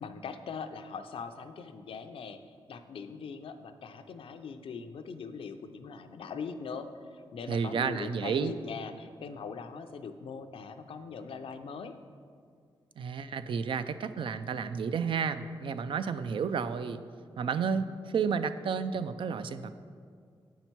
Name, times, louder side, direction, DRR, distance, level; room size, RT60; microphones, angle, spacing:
voice 1, 0.0-11.9, left 5 dB, 75° left, 8 dB, 0.5 m, -41 dB
voice 2, 7.5-8.5 13.0-17.0 17.4-19.8, right 6 dB, 65° right, 11 dB, 0.4 m, -31 dB
8.0 x 5.6 x 4.5 m, 2.2 s
cardioid pair, 85°, 9 cm